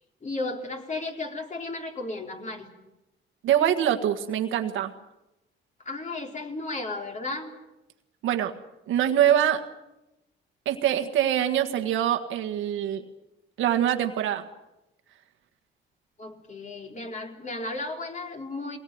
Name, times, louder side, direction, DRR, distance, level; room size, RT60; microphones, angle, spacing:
voice 1, 0.2-2.7 5.8-7.5 16.2-18.8, left 2 dB, 35° left, 3 dB, 4.3 m, -34 dB
voice 2, 3.4-4.9 8.2-8.5 8.9-9.6 10.7-13.0 13.6-14.4, right 10 dB, 85° right, 6 dB, 1.7 m, -24 dB
23.0 x 18.5 x 9.5 m, 0.95 s
cardioid pair, 90°, 20 cm